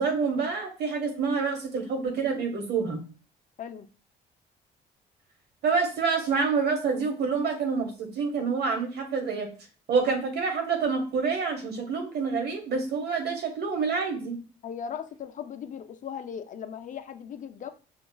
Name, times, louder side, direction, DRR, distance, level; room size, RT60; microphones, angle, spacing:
voice 1, 0.0-3.0 5.6-9.5 9.9-14.4, right 5 dB, 70° right, 4 dB, 1.1 m, -27 dB
voice 2, 14.6-17.7, left 8 dB, 45° left, 8 dB, 0.5 m, -38 dB
5.2 x 2.2 x 2.3 m, 0.36 s
cardioid pair, 80°, 18 cm